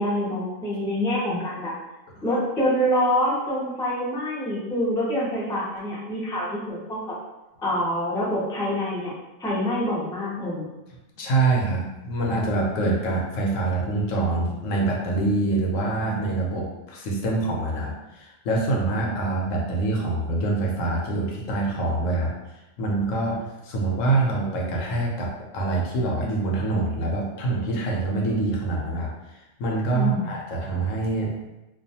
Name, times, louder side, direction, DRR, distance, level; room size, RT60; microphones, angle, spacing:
voice 1, 0.0-1.7 2.2-7.1 7.6-9.1 9.4-10.7 29.9-30.3, equal, 5° left, -7 dB, 0.3 m, -26 dB
voice 2, 11.2-22.3 22.8-29.1 29.6-31.3, right 2 dB, 80° left, -2 dB, 1.0 m, -25 dB
2.4 x 2.3 x 2.7 m, 0.98 s
omnidirectional pair, 1.3 m